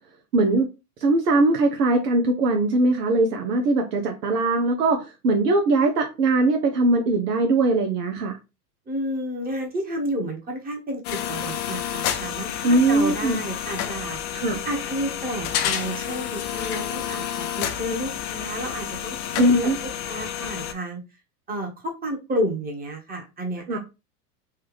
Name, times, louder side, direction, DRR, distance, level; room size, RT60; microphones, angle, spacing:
voice 1, 0.3-0.7 1.0-8.4 12.6-13.4 14.3-14.6 19.4-19.8 23.7-23.8, right 2 dB, 90° right, 2 dB, 0.7 m, -21 dB
voice 2, 8.9-14.2 14.6-21.0 21.5-23.8, equal, 20° right, 1 dB, 1.1 m, -31 dB
sound 1, 11.0-20.7, left 10 dB, 40° left, 0.6 m, -30 dB
3.4 x 2.4 x 3.1 m, 0.27 s
hypercardioid pair, 100°, 46 cm